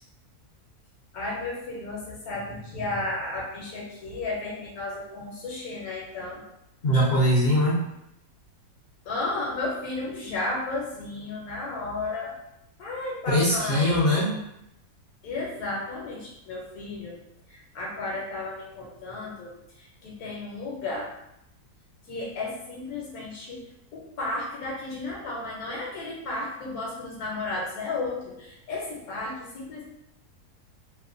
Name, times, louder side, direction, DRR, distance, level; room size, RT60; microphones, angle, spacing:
voice 1, 1.1-6.4 9.1-12.3 12.8-14.0 15.2-17.2 17.5-19.5 19.8-21.1 22.1-23.6 23.9-29.8, left 2 dB, 75° left, -3 dB, 1.1 m, -33 dB
voice 2, 6.8-7.8 13.3-14.3, equal, 60° left, -6 dB, 0.6 m, -21 dB
3.0 x 2.1 x 2.4 m, 0.82 s
omnidirectional pair, 1.6 m